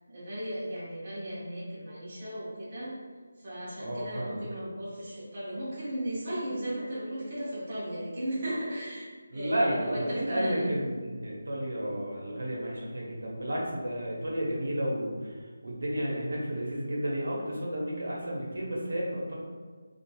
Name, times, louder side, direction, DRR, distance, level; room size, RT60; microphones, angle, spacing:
voice 1, 0.1-3.0 3.4-10.7, right 1 dB, 25° right, -10 dB, 0.7 m, -36 dB
voice 2, 3.8-4.4 9.3-19.3, equal, 85° right, -4 dB, 0.8 m, -32 dB
3.0 x 2.4 x 2.3 m, 1.5 s
figure-of-eight pair, 180°, 0 cm